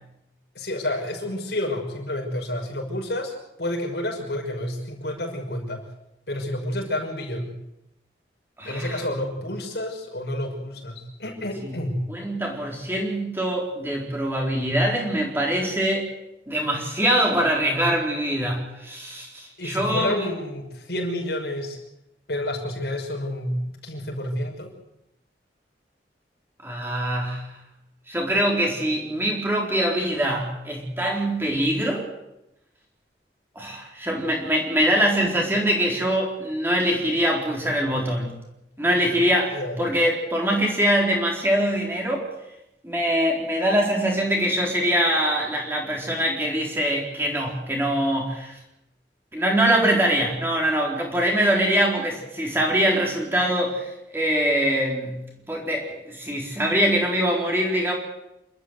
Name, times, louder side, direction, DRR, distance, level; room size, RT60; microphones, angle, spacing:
voice 1, 0.5-5.8 6.3-7.5 8.6-12.0 19.6-21.8 22.3-24.7 39.5-39.9, left 1 dB, 65° left, 0 dB, 5.9 m, -29 dB
voice 2, 8.6-9.0 11.6-16.1 16.5-20.3 26.6-27.5 28.1-32.1 33.6-38.3 38.8-42.3 42.8-48.6 49.3-57.9, equal, 15° right, -1 dB, 4.1 m, -23 dB
28.5 x 13.0 x 8.2 m, 0.88 s
head